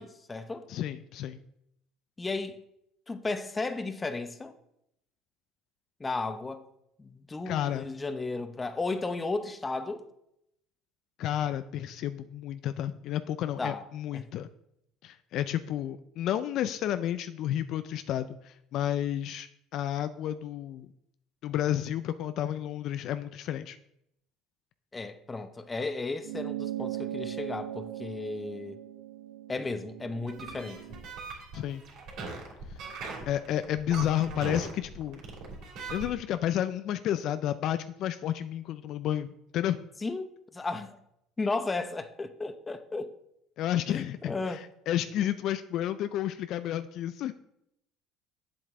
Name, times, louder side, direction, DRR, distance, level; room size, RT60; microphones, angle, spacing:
voice 1, 0.0-0.7 2.2-2.6 3.1-4.5 6.0-6.7 7.0-10.1 13.6-13.8 14.1-14.3 24.9-28.8 29.5-30.8 40.0-41.0 41.4-43.1 43.9-44.6, left 3 dB, 20° left, 0.8 m, -34 dB
voice 2, 0.7-1.4 7.5-7.9 11.2-14.5 15.0-20.9 21.4-23.8 31.5-31.8 33.3-35.2 35.9-39.8 43.6-44.6 44.9-47.3, left 11 dB, 60° left, 0.4 m, -31 dB
sound 1, 26.2-31.0, right 13 dB, 90° right, 0.5 m, -39 dB
sound 2, 30.3-36.1, right 4 dB, 65° right, 2.9 m, -40 dB
7.8 x 7.6 x 3.6 m
supercardioid pair, 90°, 0 cm